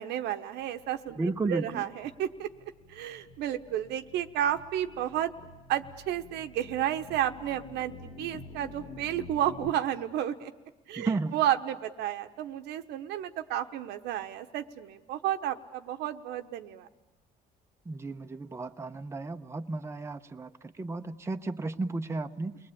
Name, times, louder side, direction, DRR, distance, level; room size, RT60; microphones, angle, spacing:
voice 1, 0.0-2.5 2.9-5.3 5.7-10.5 10.9-16.9, right 11 dB, 85° right, 7 dB, 1.1 m, -32 dB
sound 1, 0.6-9.7, left 3 dB, 80° left, 2.5 m, -49 dB
voice 2, 1.2-1.8 11.0-11.3 17.9-22.6, right 3 dB, 15° right, 7 dB, 0.8 m, -33 dB
29.5 x 20.5 x 8.7 m, 1.1 s
cardioid pair, 110°, 17 cm